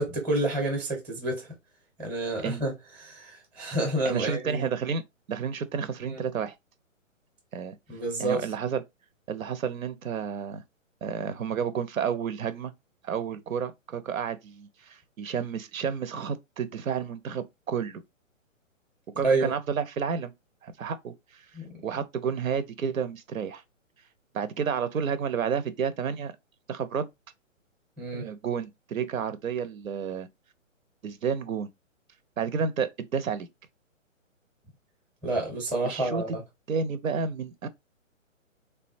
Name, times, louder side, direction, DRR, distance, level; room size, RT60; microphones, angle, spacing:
voice 1, 0.0-1.5 2.0-2.7 3.0-4.7 6.1-6.2 7.9-8.5 19.2-19.5 21.5-21.7 28.0-28.3 35.2-36.4, right 2 dB, 5° right, 0.6 m, -29 dB
voice 2, 4.0-5.0 5.3-6.5 7.5-7.8 8.2-8.8 9.3-10.6 11.0-12.7 13.0-18.0 19.2-20.3 20.6-21.4 21.8-23.6 24.3-26.3 26.7-27.1 28.1-30.3 31.0-31.7 32.4-33.5 35.8-36.4 36.7-37.7, right 6 dB, 85° right, 0.7 m, -31 dB
3.6 x 2.2 x 2.5 m
hypercardioid pair, 145°, 40 cm